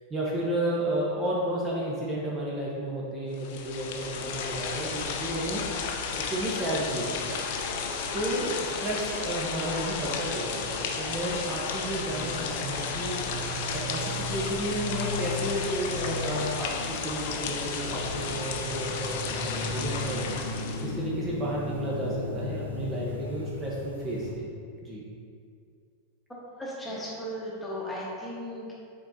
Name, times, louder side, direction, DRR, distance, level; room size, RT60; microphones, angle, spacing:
voice 1, 0.1-5.6 6.2-7.4 8.1-13.2 13.7-20.2 20.5-24.5 24.8-25.0, right 1 dB, 20° right, -5 dB, 1.0 m, -32 dB
sound 1, 3.3-21.0, left 5 dB, 50° left, 0.6 m, -33 dB
sound 2, 11.9-24.3, left 2 dB, 85° left, 0.8 m, -37 dB
voice 2, 26.3-28.7, equal, 10° left, -5 dB, 1.4 m, -36 dB
7.5 x 4.5 x 2.8 m, 2.3 s
figure-of-eight pair, 90°, 0 cm